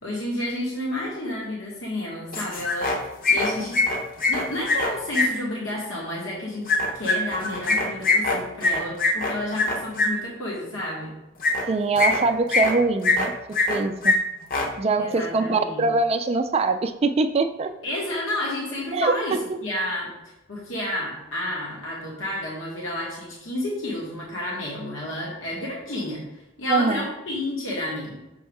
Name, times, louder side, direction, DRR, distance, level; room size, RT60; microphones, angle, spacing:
voice 1, 0.0-3.8 4.3-11.1 15.0-15.8 17.8-19.4 19.6-20.1 20.5-28.2, left 1 dB, 75° left, -4 dB, 1.5 m, -30 dB
sound 1, 2.3-3.0 3.2-5.3 6.7-10.1 11.4-11.6 12.0-12.7 13.0-13.8 14.0-14.1 14.4-14.7, left 3 dB, 45° left, 0.9 m, -22 dB
voice 2, 11.7-13.3 13.7-14.2 14.8-17.7 18.9-19.6 26.7-27.1, right 3 dB, 30° right, 8 dB, 0.3 m, -23 dB
6.1 x 3.6 x 4.6 m, 0.96 s
head